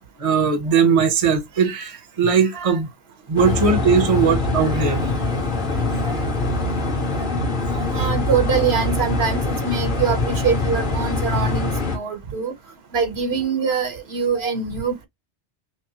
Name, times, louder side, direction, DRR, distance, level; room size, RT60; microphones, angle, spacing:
voice 1, 0.2-2.9 3.3-5.4 6.0-6.2 7.7-8.1 14.4-14.5, right 6 dB, 30° right, 0.9 m, -20 dB
sound 1, 3.4-12.0, left 2 dB, 45° left, 1.4 m, -23 dB
voice 2, 7.9-12.5 12.9-15.0, right 6 dB, 65° right, 1.3 m, -23 dB
5.6 x 2.1 x 3.0 m
omnidirectional pair, 1.2 m